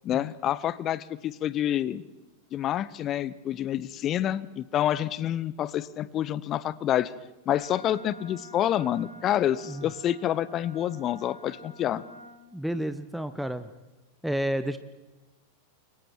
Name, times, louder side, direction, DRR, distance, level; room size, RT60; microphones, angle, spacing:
voice 1, 0.0-2.0 2.5-7.1 7.5-12.0, left 11 dB, 30° left, 19 dB, 0.8 m, -28 dB
Wind instrument woodwind instrument, 7.4-12.4, right 1 dB, 85° left, 5.5 m, -49 dB
voice 2, 12.5-13.7 14.2-14.8, right 1 dB, ahead, 10 dB, 0.9 m, -30 dB
29.0 x 23.5 x 4.6 m, 1.1 s
figure-of-eight pair, 90°, 0 cm